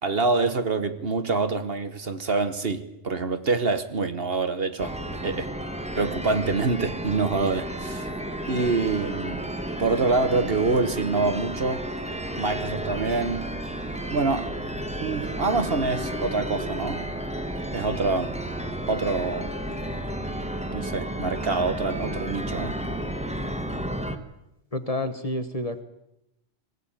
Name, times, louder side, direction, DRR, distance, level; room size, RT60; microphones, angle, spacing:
voice 1, 0.0-5.0 5.2-5.5 5.9-8.1 8.5-9.5 9.8-11.9 12.4-13.5 14.1-14.5 15.0-17.1 17.7-18.4 18.9-19.5 20.7-22.8, right 3 dB, 50° right, 1.4 m, -26 dB
sound 1, 4.8-24.2, right 1 dB, 5° right, 1.3 m, -32 dB
voice 2, 24.7-25.8, left 1 dB, 30° left, 1.4 m, -29 dB
21.5 x 16.5 x 8.9 m
omnidirectional pair, 1.3 m